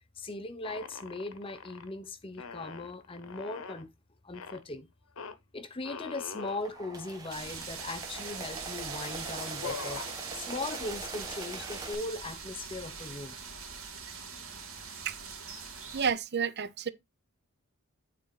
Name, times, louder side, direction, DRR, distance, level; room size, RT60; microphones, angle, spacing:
voice 1, 0.2-3.9 4.2-4.9 5.5-10.0 10.3-13.4, left 2 dB, 25° left, 0.6 m, -39 dB
sound 1, 0.6-1.9 2.3-3.9 4.3-4.6 5.2-5.3 5.8-6.6 7.3-7.4 7.6-8.3 8.9-9.1 9.4-10.1, left 5 dB, 65° left, 0.9 m, -43 dB
sound 2, 6.4-11.9, right 3 dB, 15° right, 1.1 m, -43 dB
sound 3, 7.3-16.1, right 6 dB, 75° right, 2.6 m, -42 dB
voice 2, 15.9-16.9, right 6 dB, 45° right, 0.5 m, -30 dB
8.9 x 4.1 x 4.0 m
head